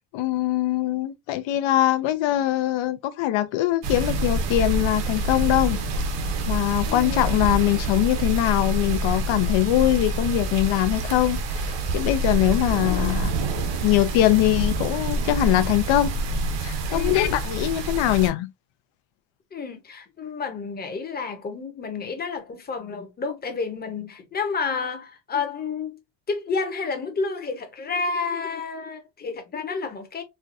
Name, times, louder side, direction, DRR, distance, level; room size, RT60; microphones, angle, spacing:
voice 1, 0.1-5.8 6.5-13.3 13.8-16.2 16.6-18.5, left 14 dB, 85° left, 0.6 m, -22 dB
sound 1, 3.8-18.3, right 2 dB, 65° right, 0.9 m, -26 dB
voice 2, 6.9-7.3 12.8-13.2 16.9-17.2 19.5-26.0 26.3-30.2, left 4 dB, 20° left, 0.7 m, -30 dB
4.4 x 2.3 x 2.6 m
cardioid pair, 165°, 45 cm